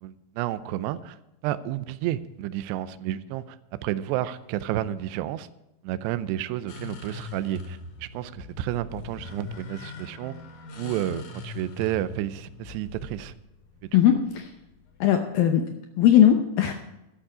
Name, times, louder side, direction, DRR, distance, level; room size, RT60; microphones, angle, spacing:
voice 1, 0.0-1.2 1.4-5.5 5.8-10.3 10.8-13.3 13.8-13.9, right 13 dB, 80° right, 14 dB, 2.7 m, -31 dB
sound 1, 6.7-15.0, left 3 dB, 55° left, 2.6 m, -41 dB
voice 2, 13.9-14.5 15.0-15.6 16.0-16.7, left 10 dB, 75° left, 5 dB, 2.1 m, -19 dB
12.5 x 11.5 x 4.9 m, 0.92 s
omnidirectional pair, 5.0 m